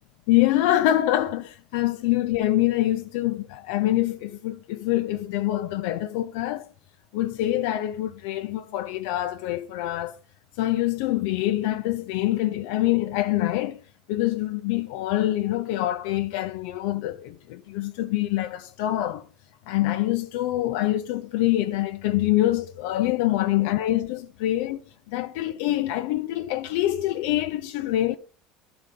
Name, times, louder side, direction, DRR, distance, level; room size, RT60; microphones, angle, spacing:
voice 1, 0.3-6.7 7.1-10.2 10.6-13.8 14.1-19.3 19.7-24.8 25.1-28.2, left 14 dB, 75° left, 0.5 m, -25 dB
11.5 x 4.0 x 4.9 m
cardioid pair, 160°, 0 cm